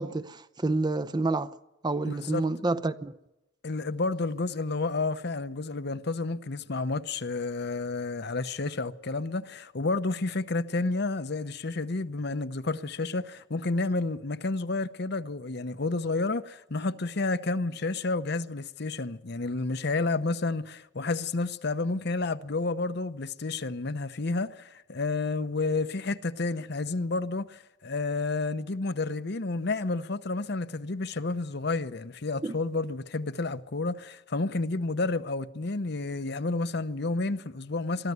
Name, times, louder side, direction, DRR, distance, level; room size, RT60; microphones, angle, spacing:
voice 1, 0.0-1.6 1.8-3.2 32.4-32.5, right 2 dB, 20° right, 0.7 m, -29 dB
voice 2, 2.0-2.4 3.6-38.1, left 3 dB, 60° left, 0.9 m, -30 dB
23.0 x 14.0 x 9.4 m
head